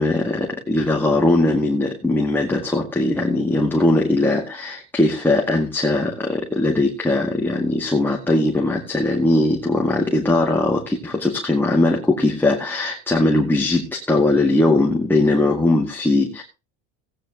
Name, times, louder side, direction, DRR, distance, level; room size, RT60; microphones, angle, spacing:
voice 1, 0.0-16.4, left 2 dB, 5° left, 0 dB, 2.0 m, -20 dB
17.5 x 9.1 x 2.9 m, 0.28 s
cardioid pair, 135°, 32 cm